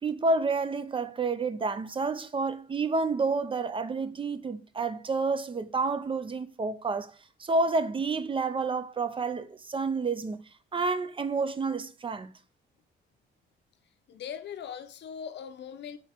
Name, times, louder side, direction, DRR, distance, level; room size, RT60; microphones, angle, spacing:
voice 1, 0.0-7.1 7.4-10.4 10.7-12.3, right 3 dB, 25° right, 0.4 m, -29 dB
voice 2, 14.1-16.0, left 8 dB, 65° left, 0.6 m, -40 dB
4.0 x 3.0 x 4.4 m
cardioid pair, 90°, 20 cm